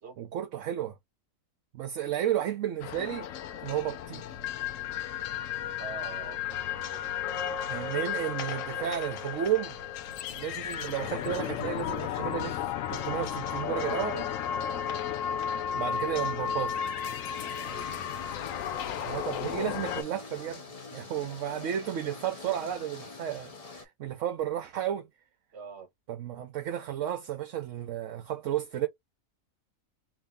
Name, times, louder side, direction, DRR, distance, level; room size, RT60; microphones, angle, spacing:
voice 1, 0.2-1.0 1.7-3.3 3.6-4.2 7.7-9.8 10.3-14.3 15.7-16.8 19.1-20.6 20.9-25.1 26.1-28.9, right 11 dB, 70° right, 1.0 m, -33 dB
sound 1, 2.8-20.0, left 9 dB, 75° left, 0.9 m, -34 dB
voice 2, 5.8-8.9 14.7-15.1 17.6-17.9 18.8-19.4 25.5-25.9, right 6 dB, 55° right, 1.2 m, -47 dB
sound 2, 17.3-23.9, left 3 dB, 35° left, 0.7 m, -45 dB
3.0 x 2.7 x 3.3 m
omnidirectional pair, 1.4 m